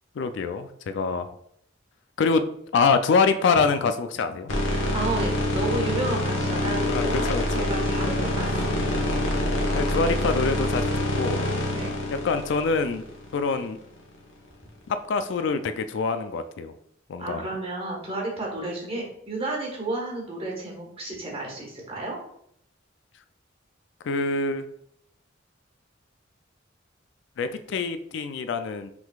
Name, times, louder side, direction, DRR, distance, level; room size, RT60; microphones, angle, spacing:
voice 1, 0.2-1.3 2.2-2.5 2.7-4.5 6.9-7.7 9.7-10.9 11.2-11.5 12.2-13.0 13.3-13.8 14.9-16.7 17.1-17.4 24.0-24.6 27.4-28.9, left 4 dB, 65° left, 9 dB, 0.4 m, -25 dB
sound 1, 4.5-13.7, left 1 dB, 85° left, 1.3 m, -26 dB
voice 2, 4.7-8.8 11.7-11.9 17.2-22.2, right 2 dB, 30° right, -1 dB, 1.4 m, -32 dB
6.0 x 3.7 x 2.4 m, 0.72 s
head